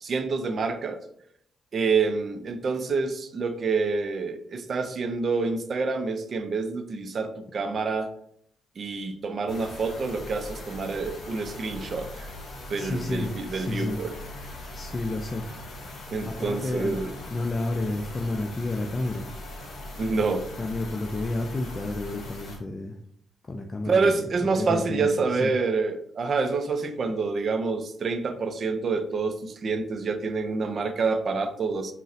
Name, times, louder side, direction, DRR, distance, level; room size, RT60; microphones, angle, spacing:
voice 1, 0.0-1.0 1.7-8.1 8.8-12.3 12.7-14.1 16.1-17.1 20.0-20.5 23.9-31.9, right 4 dB, 50° right, 9 dB, 0.3 m, -27 dB
sound 1, 9.5-22.6, left 2 dB, 65° left, 0.8 m, -40 dB
voice 2, 12.8-14.0 14.7-15.5 16.2-16.9 17.3-19.3 20.6-23.0 23.5-25.5, left 2 dB, 30° left, 2 dB, 0.3 m, -31 dB
3.8 x 2.1 x 2.6 m, 0.69 s
cardioid pair, 85°, 0 cm